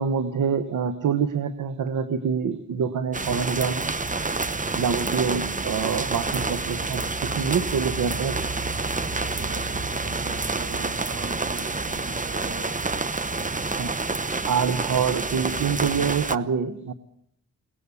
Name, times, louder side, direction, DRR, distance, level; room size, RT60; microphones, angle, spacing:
voice 1, 0.0-3.9 4.7-8.5 13.8-13.9 14.5-16.9, right 6 dB, 90° right, 11 dB, 1.1 m, -26 dB
sound 1, 3.1-16.4, right 3 dB, 25° right, 1.0 m, -28 dB
voice 2, 8.9-12.8, right 4 dB, 70° right, 5 dB, 4.3 m, -41 dB
22.5 x 18.5 x 8.3 m, 0.70 s
cardioid pair, 50°, 30 cm